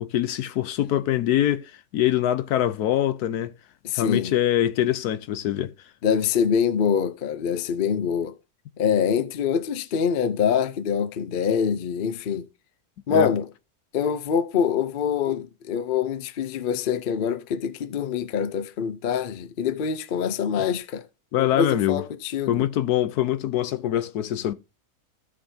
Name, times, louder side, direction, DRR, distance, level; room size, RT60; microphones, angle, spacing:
voice 1, 0.0-3.5 3.9-5.7 13.1-13.3 21.3-22.0 22.5-24.5, left 12 dB, 80° left, 1.2 m, -24 dB
voice 2, 3.8-4.3 6.0-8.3 8.8-12.5 13.1-13.5 13.9-21.0 21.4-22.7, left 7 dB, 50° left, 0.6 m, -25 dB
15.0 x 6.3 x 2.7 m
omnidirectional pair, 1.6 m